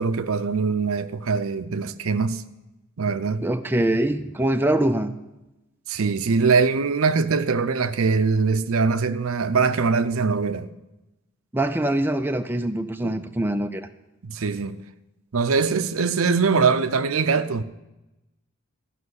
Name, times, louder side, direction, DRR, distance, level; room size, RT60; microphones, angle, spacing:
voice 1, 0.0-2.4 3.0-3.5 5.9-10.7 13.0-13.2 14.2-14.8 15.3-17.6, right 4 dB, 70° right, 0.6 m, -22 dB
voice 2, 3.4-5.1 11.5-13.9, right 1 dB, 10° right, 0.5 m, -23 dB
14.0 x 5.8 x 9.5 m
head